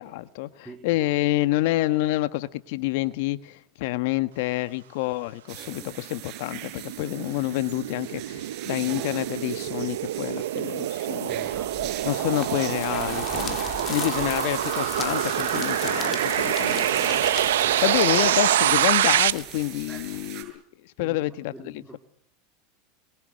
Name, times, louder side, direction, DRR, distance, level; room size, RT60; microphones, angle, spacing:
voice 1, 0.0-11.5 12.0-22.0, left 17 dB, 65° left, 13 dB, 1.4 m, -28 dB
voice 2, 0.6-1.0 5.7-6.0 11.2-12.7 13.7-14.2 17.6-17.8 19.9-20.3 21.0-22.0, right 2 dB, 10° right, 4 dB, 3.3 m, -46 dB
sound 1, 5.5-20.4, right 13 dB, 50° right, 7.0 m, -42 dB
sound 2, 6.1-19.3, right 12 dB, 80° right, 1.1 m, -26 dB
sound 3, 11.4-20.3, left 7 dB, 35° left, 4.0 m, -37 dB
26.0 x 22.5 x 6.6 m, 0.69 s
hypercardioid pair, 105°, 0 cm